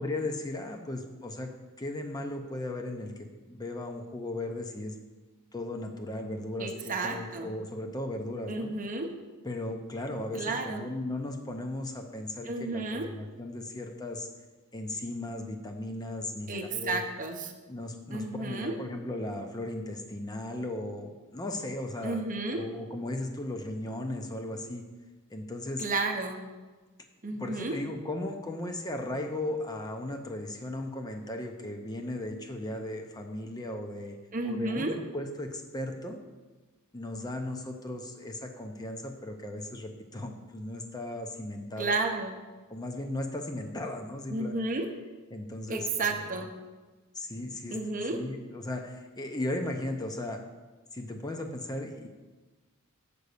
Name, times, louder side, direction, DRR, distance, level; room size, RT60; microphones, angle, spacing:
voice 1, 0.0-4.9 5.5-8.7 9.4-14.3 14.7-17.0 17.7-22.2 22.5-24.8 25.3-25.8 27.4-34.2 34.4-36.2 36.9-42.0 42.7-44.6 45.3-46.4 47.1-47.8 48.1-50.4 50.9-52.1, left 1 dB, 15° left, 4 dB, 0.6 m, -36 dB
voice 2, 6.6-7.6 8.5-9.1 10.4-10.8 12.5-13.1 16.5-17.5 18.1-18.8 22.0-22.6 25.8-26.4 27.2-27.8 34.3-35.0 41.8-42.4 44.3-44.9 45.7-46.5 47.7-48.2, right 3 dB, 35° right, 4 dB, 0.8 m, -32 dB
6.8 x 5.1 x 6.6 m, 1.3 s
head